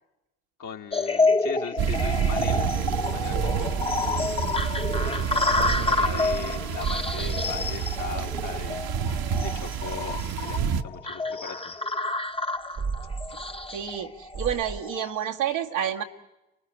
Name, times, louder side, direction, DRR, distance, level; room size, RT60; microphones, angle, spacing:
voice 1, 0.6-2.8 3.1-3.9 5.0-11.9, left 6 dB, 55° left, 4 dB, 2.0 m, -39 dB
sound 1, 0.9-15.2, left 3 dB, 15° left, 1.1 m, -29 dB
sound 2, 1.8-10.8, right 7 dB, 65° right, 1.3 m, -29 dB
sound 3, 3.3-8.4 12.8-14.0 14.3-14.8, right 6 dB, 40° right, 1.3 m, -35 dB
voice 2, 13.7-16.0, right 9 dB, 85° right, 1 dB, 1.7 m, -29 dB
30.0 x 19.5 x 9.1 m, 0.95 s
hypercardioid pair, 40°, 38 cm